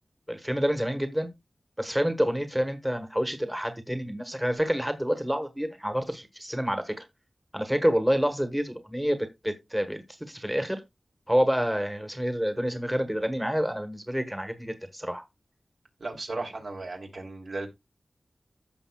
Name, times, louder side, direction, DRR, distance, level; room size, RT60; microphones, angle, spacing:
voice 1, 0.3-1.3 1.8-7.0 7.5-10.8 11.3-15.2, equal, 10° right, 1.3 m, -28 dB
voice 2, 16.0-17.7, right 2 dB, 75° right, 2.8 m, -35 dB
15.0 x 5.5 x 2.3 m
wide cardioid pair, 70°, 0 cm